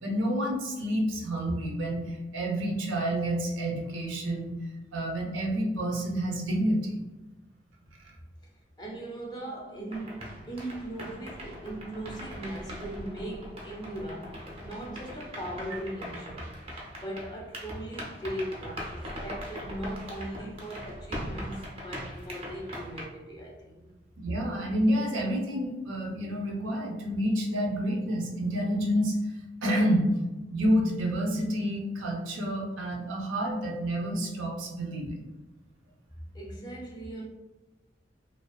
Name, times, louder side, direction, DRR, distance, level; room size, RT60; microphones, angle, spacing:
voice 1, 0.0-4.5 4.9-6.9 24.2-29.1 29.6-30.1 30.5-35.2, equal, 85° right, 0.6 m, -29 dB
voice 2, 8.8-16.5 16.9-23.9 36.3-37.3, right 1 dB, 20° left, 0.5 m, -39 dB
sound 1, 9.9-23.0, equal, 30° right, 0.5 m, -41 dB
2.5 x 2.3 x 2.2 m
head